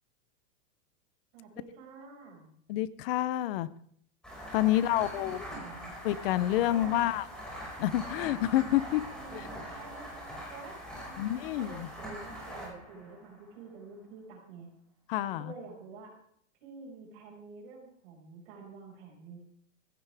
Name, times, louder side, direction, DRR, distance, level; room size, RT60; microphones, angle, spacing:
voice 1, 1.3-2.5 4.6-6.0 6.7-7.1 9.1-14.7 15.2-16.1 16.6-19.4, right 4 dB, 50° right, 0 dB, 5.7 m, -49 dB
voice 2, 2.7-3.7 4.5-5.4 6.0-7.3 7.8-9.0 9.3-9.5 11.2-11.9 15.1-15.5, left 14 dB, 45° left, 16 dB, 0.8 m, -28 dB
sound 1, 4.2-13.6, equal, ahead, 5.5 m, -43 dB
16.0 x 15.0 x 3.5 m, 0.65 s
supercardioid pair, 160°, 38 cm